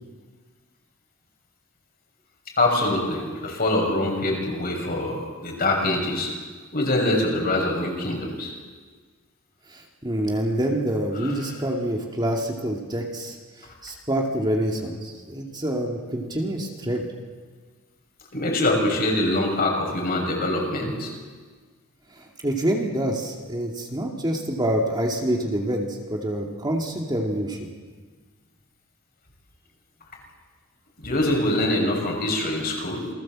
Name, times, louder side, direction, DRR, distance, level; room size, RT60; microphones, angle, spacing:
voice 1, 2.6-6.3 6.7-8.5 11.2-11.5 18.3-21.1 31.0-33.1, left 1 dB, 45° left, 0 dB, 6.2 m, -24 dB
voice 2, 9.7-17.1 22.1-27.7, right 1 dB, 20° right, 0 dB, 2.4 m, -27 dB
28.0 x 19.5 x 7.6 m, 1.5 s
head